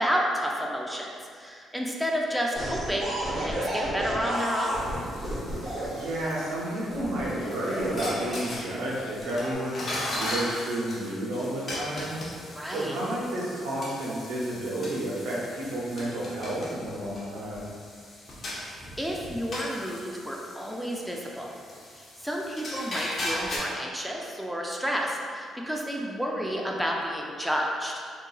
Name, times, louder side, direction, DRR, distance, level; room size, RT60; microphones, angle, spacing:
voice 1, 0.0-3.1 3.4-4.8 12.5-13.0 18.5-21.5 22.0-27.9, equal, ahead, -2 dB, 0.4 m, -31 dB
sound 1, 2.6-5.9 6.9-8.6 9.2-9.6, right 1 dB, 40° right, 1.0 m, -32 dB
sound 2, 4.3-23.6, left 1 dB, 45° left, 0.7 m, -38 dB
voice 2, 5.8-12.2 12.7-17.6, right 1 dB, 85° right, -6 dB, 0.8 m, -31 dB
3.8 x 2.4 x 2.3 m, 2.1 s
cardioid pair, 90°, 0 cm